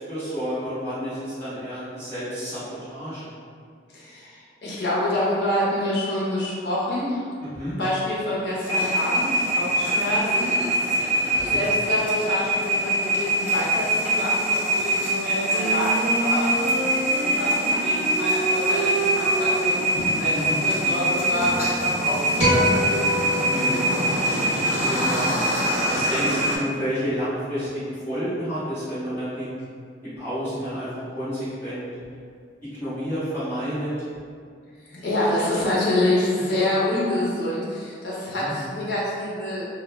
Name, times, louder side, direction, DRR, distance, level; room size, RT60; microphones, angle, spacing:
voice 1, 0.1-3.3 7.4-7.8 11.2-11.6 20.3-20.6 23.5-25.3 25.9-29.5 30.1-31.9 32.8-33.9 38.4-38.5, equal, 15° left, -15 dB, 1.3 m, -30 dB
voice 2, 3.9-7.3 7.8-10.5 11.3-20.3 20.6-23.0 34.9-39.7, left 1 dB, 70° left, -6 dB, 0.7 m, -27 dB
sound 1, 8.6-26.6, right 1 dB, 10° right, 1.0 m, -24 dB
Wind instrument woodwind instrument, 14.9-23.6, right 2 dB, 65° right, 0.4 m, -30 dB
sound 2, 22.4-24.9, equal, 35° left, 1.0 m, -25 dB
2.2 x 2.2 x 3.2 m, 2.2 s
head